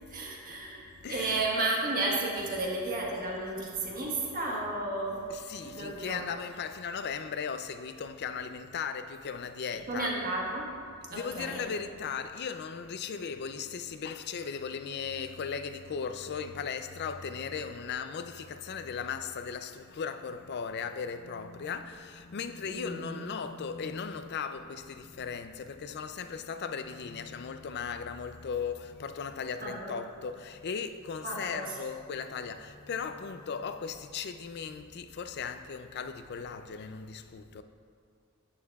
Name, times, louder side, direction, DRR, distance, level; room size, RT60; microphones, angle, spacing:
voice 1, 0.1-5.3 5.6-6.4 9.7-10.7 11.1-11.8 22.7-23.3 29.6-29.9 31.2-31.8, right 2 dB, 45° right, 1.3 m, -33 dB
voice 2, 1.0-1.4 5.3-10.2 11.1-37.6, left 6 dB, 50° left, 0.4 m, -37 dB
11.0 x 9.1 x 2.4 m
head